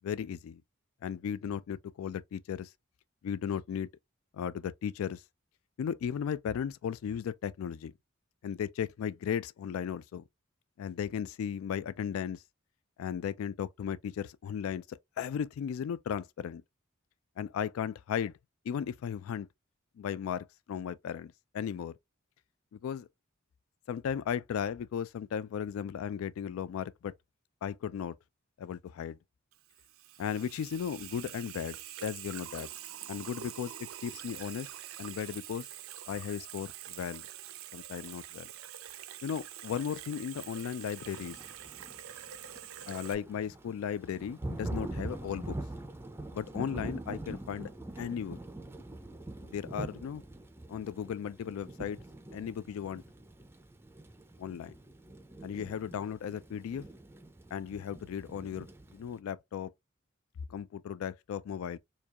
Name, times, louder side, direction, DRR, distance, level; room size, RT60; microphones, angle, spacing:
voice 1, 0.0-0.6 1.0-2.7 3.2-3.9 4.3-5.2 5.8-7.9 8.4-10.2 10.8-12.4 13.0-16.6 17.4-18.3 18.7-19.5 20.0-21.9 22.7-23.1 23.9-27.1 27.6-28.1 28.6-29.2 30.2-32.7 33.1-34.7 35.0-35.7 36.1-37.2 37.7-38.5 39.2-41.4 42.9-45.6 46.3-47.7 48.0-48.4 49.5-50.2 50.7-52.0 52.3-53.0 54.4-54.7 55.4-56.9 57.5-58.7 58.9-59.7 60.5-61.8, left 8 dB, 80° left, 0.3 m, -36 dB
Water tap faucet / Sink (filling or washing), 29.5-43.1, right 11 dB, 80° right, 0.4 m, -46 dB
Thunder / Rain, 41.1-59.2, right 1 dB, 10° right, 0.4 m, -44 dB
4.5 x 2.3 x 2.8 m
head